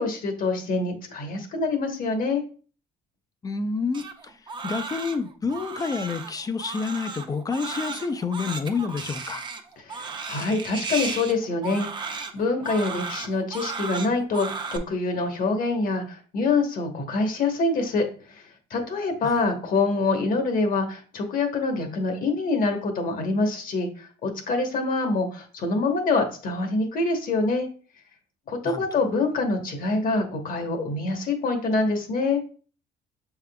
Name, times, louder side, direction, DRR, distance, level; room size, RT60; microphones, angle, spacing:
voice 1, 0.0-2.4 9.8-18.1 18.7-27.7 28.5-32.4, left 3 dB, 55° left, 1.1 m, -25 dB
voice 2, 3.4-4.3 4.6-9.4 19.2-19.4 28.6-28.8, left 4 dB, 20° left, 0.4 m, -29 dB
Crying sobbing, 3.9-14.8, right 4 dB, 25° right, 0.6 m, -35 dB
6.5 x 3.6 x 2.2 m
cardioid pair, 110°, 17 cm